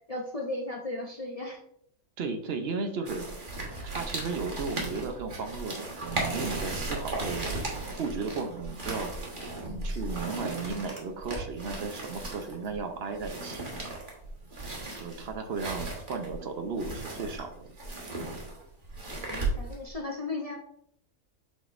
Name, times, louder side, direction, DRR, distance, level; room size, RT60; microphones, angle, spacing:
voice 1, 0.1-1.6 19.3-20.6, left 2 dB, 55° left, 0 dB, 0.4 m, -35 dB
voice 2, 2.2-3.3 3.8-7.6 8.0-9.1 9.8-13.6 15.0-17.7, right 4 dB, 55° right, 6 dB, 0.8 m, -35 dB
sound 1, 3.1-19.9, right 2 dB, 35° right, 1.4 m, -36 dB
7.8 x 5.0 x 2.5 m, 0.71 s
omnidirectional pair, 1.6 m